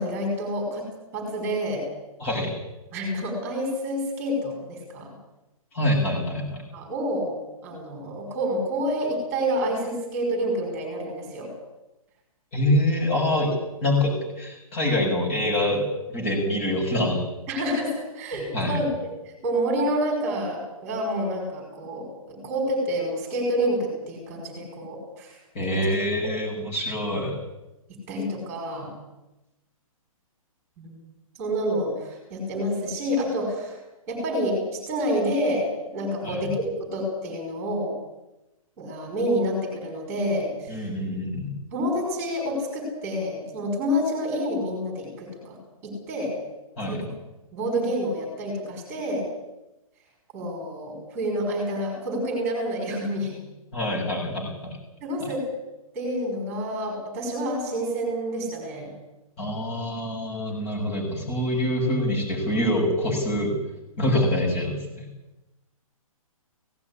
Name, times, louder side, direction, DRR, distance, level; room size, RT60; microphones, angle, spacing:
voice 1, 0.0-1.8 2.9-5.1 6.7-7.4 7.6-11.5 17.5-18.9 19.3-25.8 28.1-28.9 30.8-31.0 31.4-33.8 34.1-37.9 38.8-40.9 41.7-45.6 45.8-46.3 46.9-47.1 47.5-49.2 50.3-53.4 55.0-55.4 55.9-58.9, equal, 10° right, 0 dB, 5.4 m, -28 dB
voice 2, 2.2-2.5 5.7-6.6 12.5-17.2 18.5-18.8 25.5-27.4 36.2-36.4 40.7-41.6 46.8-47.0 53.7-54.8 59.4-63.5 64.0-65.1, left 1 dB, 20° left, -2 dB, 6.8 m, -25 dB
17.5 x 16.0 x 9.9 m, 0.97 s
hypercardioid pair, 180°, 19 cm